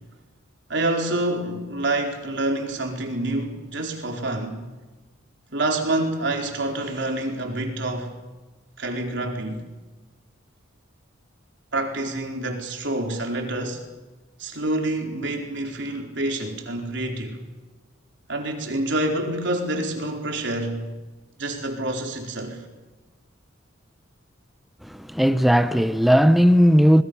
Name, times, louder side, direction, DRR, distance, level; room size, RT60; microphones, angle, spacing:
voice 1, 0.7-4.6 5.5-8.1 8.8-9.7 11.7-13.8 14.4-17.4 18.3-20.9 21.4-22.6, right 2 dB, 60° right, 4.6 m, -27 dB
voice 2, 24.8-27.0, equal, ahead, 0.7 m, -17 dB
26.0 x 21.5 x 7.1 m
head